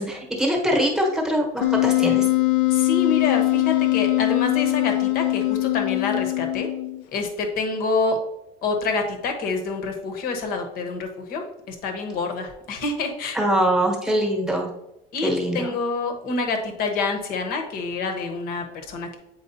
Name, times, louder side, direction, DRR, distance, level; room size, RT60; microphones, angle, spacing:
voice 1, 0.0-2.3 13.3-14.7 15.2-15.7, equal, 5° right, -1 dB, 1.1 m, -23 dB
Wind instrument woodwind instrument, 1.6-7.0, left 20 dB, 90° left, 0.5 m, -21 dB
voice 2, 2.7-6.7 7.1-8.2 8.6-13.4 15.1-19.2, left 3 dB, 50° left, 5 dB, 1.1 m, -27 dB
8.2 x 4.6 x 2.7 m, 0.90 s
cardioid pair, 170°, 19 cm